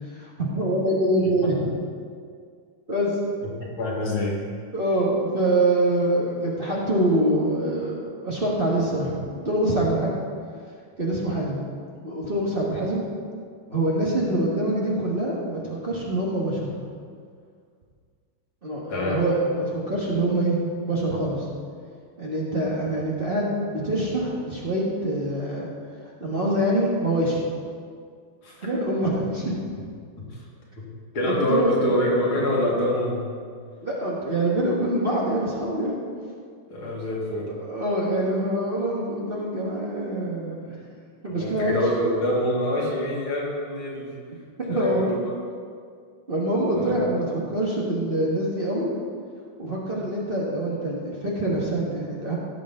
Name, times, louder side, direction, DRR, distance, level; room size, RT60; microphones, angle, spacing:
voice 1, 0.1-1.7 2.9-3.2 4.7-9.1 9.4-10.2 11.0-11.6 12.0-13.0 13.7-16.7 18.6-21.4 22.2-25.7 26.2-27.4 28.6-29.6 31.2-31.9 33.8-36.0 37.5-40.8 41.2-41.7 44.6-45.0 46.3-48.9 49.6-52.4, right 1 dB, 30° right, -5 dB, 1.6 m, -25 dB
voice 2, 3.8-4.4 18.9-19.2 28.4-28.7 30.3-30.5 30.8-30.9 31.1-33.3 36.7-37.5 41.3-44.1 44.7-45.3 46.8-47.0, left 1 dB, 75° left, -5 dB, 3.0 m, -25 dB
17.0 x 7.0 x 3.8 m, 2.1 s
omnidirectional pair, 2.3 m